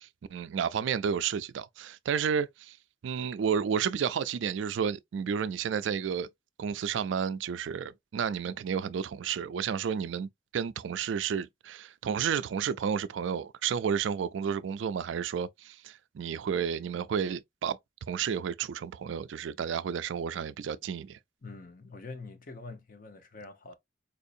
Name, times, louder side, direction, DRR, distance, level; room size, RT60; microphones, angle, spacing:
voice 1, 0.0-2.8 3.0-6.3 6.6-17.8 18.1-21.2, right 7 dB, 75° right, 0.3 m, -31 dB
voice 2, 21.4-23.8, left 3 dB, 50° left, 0.8 m, -45 dB
4.3 x 2.7 x 2.5 m
head